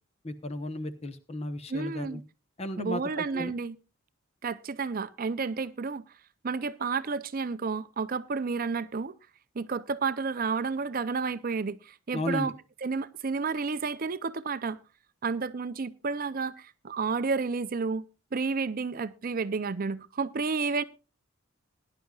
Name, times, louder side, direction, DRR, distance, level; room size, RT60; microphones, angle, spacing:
voice 1, 0.2-2.2 2.6-3.5 12.1-12.5, left 1 dB, 30° left, 1.0 m, -34 dB
voice 2, 1.7-2.2 2.8-3.7 4.4-6.0 6.4-9.2 9.6-12.5 12.8-14.8 15.2-18.0 18.3-20.8, right 4 dB, 40° right, 0.5 m, -31 dB
20.5 x 10.5 x 2.4 m
head